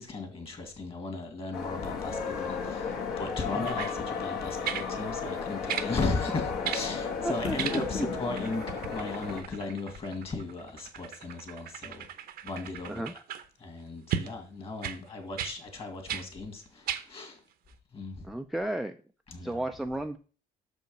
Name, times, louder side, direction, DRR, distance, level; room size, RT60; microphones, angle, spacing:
voice 1, 0.0-12.1 12.4-13.0 13.6-17.4 17.9-18.3 19.3-19.6, left 3 dB, 35° left, 2.3 m, -36 dB
sound 1, 1.5-9.4, left 5 dB, 65° left, 2.0 m, -34 dB
sound 2, 3.6-4.0 4.6-4.9 5.7-5.9 6.6-6.9 7.6-8.1 8.4-13.5 14.1-14.3 14.8-15.0 15.4-15.6 16.1-16.3 16.9-17.1 17.7-17.8, right 9 dB, 65° right, 0.8 m, -36 dB
voice 2, 7.2-8.1 12.9-13.1 18.2-19.0 19.4-20.2, right 1 dB, ahead, 0.4 m, -33 dB
6.4 x 5.3 x 5.2 m
cardioid pair, 110°, 17 cm